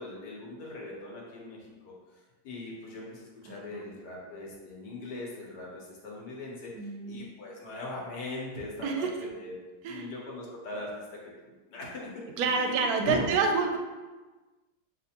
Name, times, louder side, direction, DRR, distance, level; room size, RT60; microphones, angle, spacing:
voice 1, 0.0-1.9 2.4-9.5 9.8-10.9 11.4-12.1 12.6-13.3, left 2 dB, 65° left, -3 dB, 1.5 m, -40 dB
voice 2, 6.7-7.2 8.8-9.1 9.8-10.1 12.4-13.8, right 4 dB, 70° right, 3 dB, 0.9 m, -28 dB
6.7 x 2.5 x 2.8 m, 1.2 s
omnidirectional pair, 2.0 m